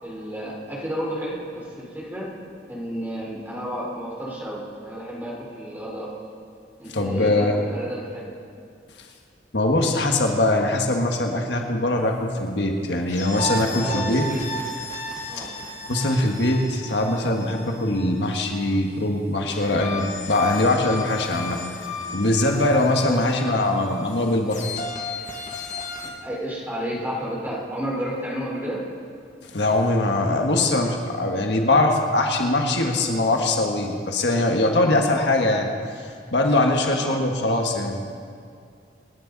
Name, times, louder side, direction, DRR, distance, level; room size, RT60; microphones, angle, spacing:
voice 1, 0.0-2.3 2.7-6.1 6.8-8.3 13.7-14.4 15.3-15.5 22.9-23.3 26.0-28.8 36.9-37.2, equal, 10° right, -5 dB, 4.0 m, -31 dB
voice 2, 6.9-7.7 9.5-14.2 15.4-15.5 15.9-21.6 22.1-24.6 29.5-35.7 36.3-38.0, left 2 dB, 75° left, 2 dB, 1.5 m, -22 dB
sound 1, 13.1-18.7 19.5-26.1, left 2 dB, 45° left, 2.0 m, -34 dB
27.0 x 10.0 x 4.0 m, 2.3 s
head